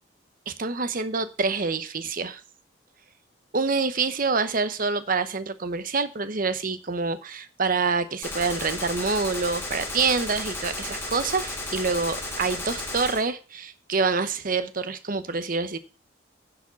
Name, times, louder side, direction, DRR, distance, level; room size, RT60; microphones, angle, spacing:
voice 1, 0.5-2.4 3.5-15.8, right 4 dB, 45° right, 12 dB, 0.8 m, -26 dB
Gunshot gunfire, 8.2-13.2, left 2 dB, 10° left, 2.3 m, -33 dB
10.0 x 5.0 x 6.9 m, 0.35 s
head